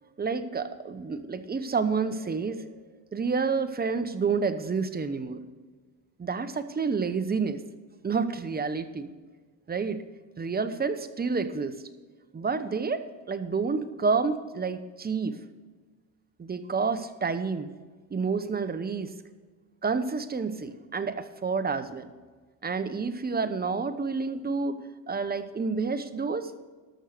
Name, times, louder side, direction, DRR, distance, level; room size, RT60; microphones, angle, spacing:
voice 1, 0.2-2.7 3.1-5.4 6.2-7.6 8.0-9.1 9.7-10.0 10.4-11.8 12.3-15.4 16.4-17.7 18.1-19.1 19.8-22.1 22.6-24.8 25.1-26.5, right 5 dB, 20° right, 10 dB, 0.9 m, -29 dB
13.0 x 6.4 x 6.6 m, 1.4 s
cardioid pair, 95°, 46 cm